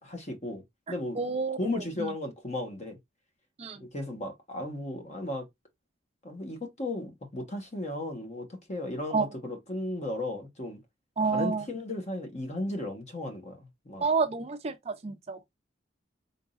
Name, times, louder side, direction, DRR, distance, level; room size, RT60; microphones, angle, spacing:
voice 1, 0.0-1.2 1.6-3.0 3.8-5.5 6.2-10.8 11.3-14.0, left 1 dB, 35° left, 1.1 m, -35 dB
voice 2, 1.2-2.1 3.6-3.8 9.1-9.3 11.2-11.6 14.0-15.4, right 4 dB, 30° right, 0.5 m, -29 dB
4.0 x 3.6 x 2.4 m
head